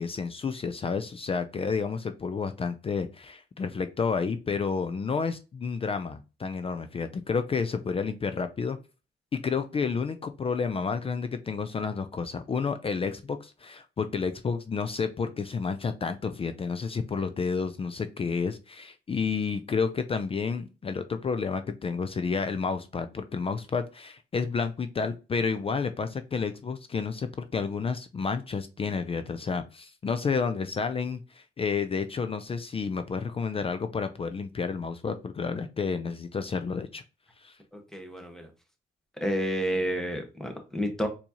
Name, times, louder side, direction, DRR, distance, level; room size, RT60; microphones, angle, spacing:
voice 1, 0.0-8.8 9.3-37.0 37.4-37.5, left 5 dB, 30° left, 9 dB, 0.4 m, -30 dB
voice 2, 37.7-38.5 39.2-41.1, equal, ahead, 4 dB, 1.1 m, -30 dB
4.3 x 2.8 x 2.8 m, 0.31 s
cardioid pair, 90°, 20 cm